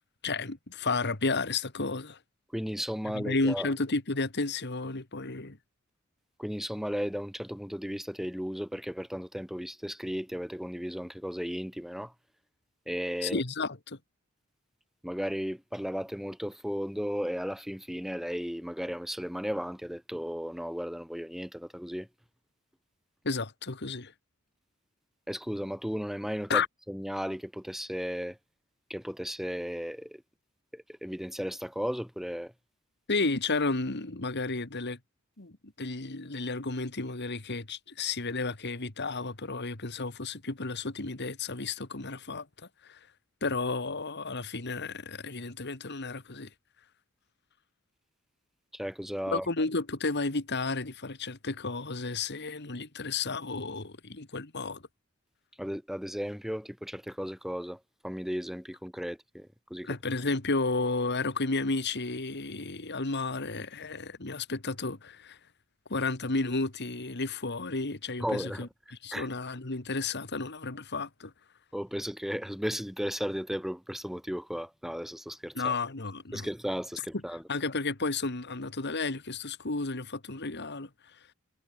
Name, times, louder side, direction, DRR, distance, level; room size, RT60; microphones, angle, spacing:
voice 1, 0.2-2.2 3.1-5.6 13.2-14.0 23.2-24.1 26.5-26.7 33.1-35.0 35.4-42.5 42.8-43.0 43.4-46.5 49.3-54.8 59.8-65.4 65.9-68.7 69.0-71.3 75.5-76.5 77.5-80.9, left 3 dB, 55° left, 2.2 m, -32 dB
voice 2, 2.5-3.7 6.4-12.1 12.9-13.4 15.0-22.1 25.3-28.4 28.9-30.2 30.7-32.5 48.7-49.5 55.6-59.9 68.2-68.7 69.1-69.3 71.7-75.7 76.3-77.4, equal, ahead, 1.9 m, -35 dB
head